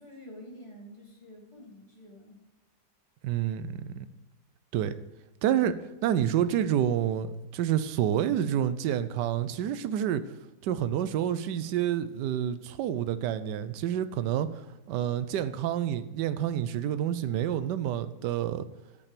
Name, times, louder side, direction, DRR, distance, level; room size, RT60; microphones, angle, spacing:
voice 1, 0.0-2.4, equal, 20° left, 1.8 m, -48 dB
voice 2, 3.2-4.1 4.7-4.9 5.4-5.8 6.0-10.2 10.6-14.5 14.9-18.7, right 10 dB, 90° right, 1.2 m, -28 dB
11.0 x 5.4 x 5.1 m
omnidirectional pair, 1.8 m